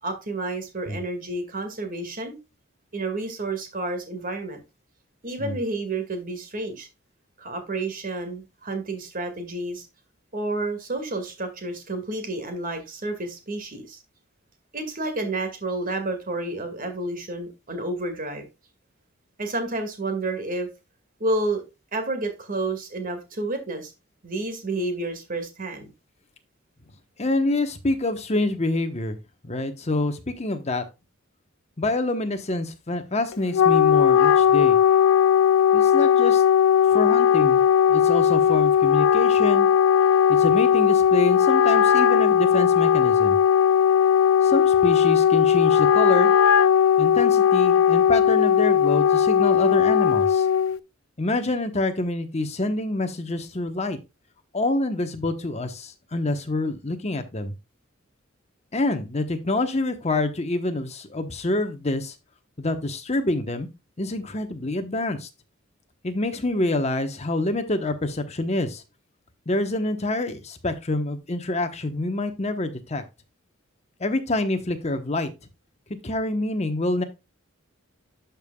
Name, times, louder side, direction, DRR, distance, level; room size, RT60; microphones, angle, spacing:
voice 1, 0.0-2.4 2.9-4.6 5.2-6.9 7.4-9.9 10.3-14.0 14.7-18.5 19.4-20.7 21.2-21.6 21.9-23.9 24.2-25.9, right 2 dB, 45° right, 7 dB, 2.0 m, -30 dB
voice 2, 27.2-29.2 29.4-30.8 31.8-34.8 35.7-36.4 36.9-37.6 37.9-39.7 40.3-43.4 44.4-46.3 47.0-50.5 51.2-54.0 54.5-57.5 58.7-62.1 62.6-63.7 64.0-65.3 66.0-68.8 69.5-73.0 74.0-75.3 76.0-77.0, left 2 dB, 30° left, 7 dB, 1.1 m, -26 dB
Wind instrument woodwind instrument, 33.3-50.8, left 8 dB, 75° left, 0.4 m, -18 dB
11.5 x 5.4 x 2.3 m, 0.26 s
head